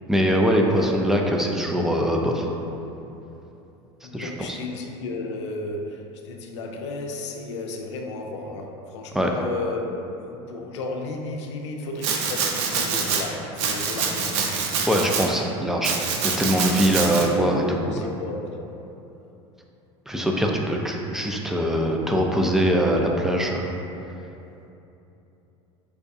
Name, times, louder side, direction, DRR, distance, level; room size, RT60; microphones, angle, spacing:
voice 1, 0.1-2.5 4.1-4.6 9.1-9.3 14.9-16.0 16.2-17.6 20.1-23.7, equal, 5° right, 1 dB, 0.3 m, -22 dB
voice 2, 4.0-9.9 10.1-15.3 17.0-18.6, left 2 dB, 90° left, 2 dB, 0.4 m, -33 dB
Domestic sounds home sounds, 12.0-13.2 13.6-15.3 15.8-17.3, right 5 dB, 75° right, 0.4 m, -25 dB
4.6 x 2.3 x 2.6 m, 2.9 s
supercardioid pair, 95°, 15 cm